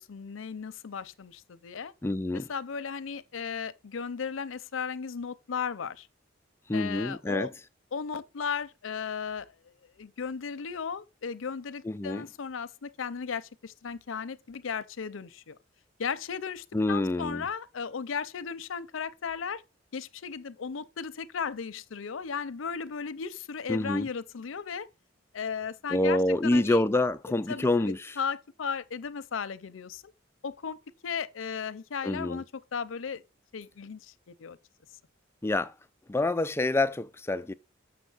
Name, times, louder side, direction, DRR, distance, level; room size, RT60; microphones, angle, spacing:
voice 1, 0.0-1.9 2.3-6.1 6.7-7.5 7.9-9.5 10.0-15.6 16.0-19.6 19.9-24.9 25.3-26.8 27.5-30.0 30.4-30.8 31.0-32.4 32.7-33.2 33.5-34.6, left 6 dB, 90° left, 0.6 m, -36 dB
voice 2, 2.0-2.5 6.7-7.5 11.8-12.3 16.7-17.5 23.7-24.1 25.9-28.2 32.0-32.4 35.4-35.7 36.1-37.5, left 2 dB, 15° left, 0.3 m, -27 dB
7.4 x 6.0 x 3.9 m
head